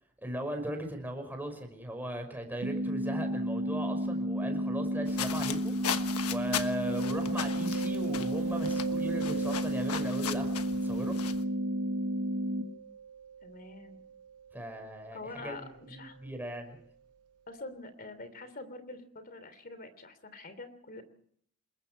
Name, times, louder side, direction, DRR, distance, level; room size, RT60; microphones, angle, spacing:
voice 1, 0.2-6.0 6.3-11.1 14.5-15.2 15.4-16.8, right 1 dB, 10° right, 4 dB, 5.4 m, -38 dB
sound 1, 2.6-12.6, equal, 60° right, 1.9 m, -32 dB
sound 2, 5.1-11.4, left 8 dB, 80° left, 1.3 m, -38 dB
Mallet percussion, 6.9-16.4, right 7 dB, 85° right, 0.8 m, -42 dB
voice 2, 13.4-14.0 15.1-16.2 17.5-21.0, left 2 dB, 40° left, 12 dB, 3.1 m, -45 dB
28.0 x 21.5 x 4.5 m, 0.64 s
head